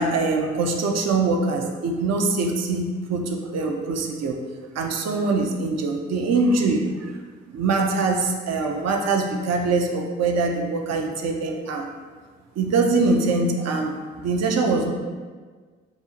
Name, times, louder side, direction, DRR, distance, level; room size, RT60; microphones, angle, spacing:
voice 1, 0.0-4.4 4.7-7.1 7.5-11.9 12.6-14.9, right 3 dB, 55° right, 2 dB, 0.7 m, -23 dB
5.2 x 2.4 x 2.7 m, 1.5 s
hypercardioid pair, 50°, 31 cm